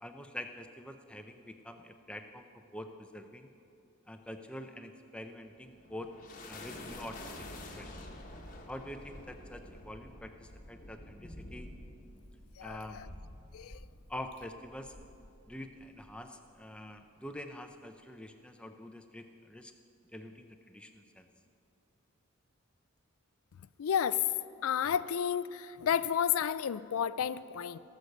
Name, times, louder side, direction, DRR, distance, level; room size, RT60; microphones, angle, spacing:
voice 1, 0.0-3.5 4.1-6.1 6.5-7.2 7.8-8.1 8.7-11.7 12.6-13.0 14.1-15.0 15.5-19.7 20.1-21.3, left 1 dB, 5° left, 6 dB, 0.5 m, -46 dB
sound 1, 5.6-16.1, left 1 dB, 35° left, 1.1 m, -49 dB
voice 2, 12.6-13.1 13.5-13.8 23.8-24.3 24.6-27.8, left 8 dB, 75° left, 16 dB, 0.4 m, -31 dB
18.0 x 6.6 x 6.6 m, 2.6 s
head